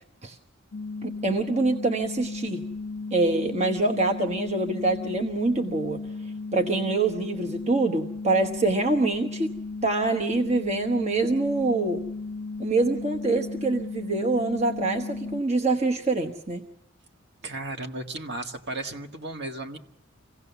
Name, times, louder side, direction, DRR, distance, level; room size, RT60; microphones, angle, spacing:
sound 1, 0.7-15.4, left 3 dB, 60° left, 0.7 m, -35 dB
voice 1, 1.0-2.6 3.1-6.0 6.5-9.5 9.8-12.0 12.6-16.7, right 3 dB, 30° right, 3 dB, 1.1 m, -25 dB
voice 2, 17.4-19.8, right 2 dB, 55° right, 4 dB, 1.7 m, -34 dB
26.0 x 17.0 x 7.0 m, 0.81 s
head